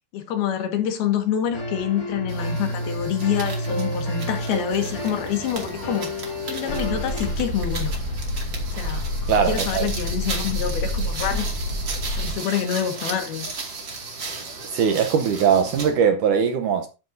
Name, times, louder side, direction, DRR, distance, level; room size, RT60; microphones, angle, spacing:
voice 1, 0.1-7.9 8.7-9.1 9.5-11.5 12.2-13.5, left 9 dB, 75° left, 3.6 m, -27 dB
sound 1, 1.5-7.3, equal, 25° left, 3.2 m, -30 dB
sound 2, 2.3-16.0, right 3 dB, 35° right, 2.3 m, -36 dB
sound 3, 6.7-12.3, left 1 dB, 50° left, 4.6 m, -28 dB
voice 2, 9.3-9.9 14.7-16.9, right 7 dB, 75° right, 2.0 m, -20 dB
12.0 x 11.0 x 2.7 m
omnidirectional pair, 4.6 m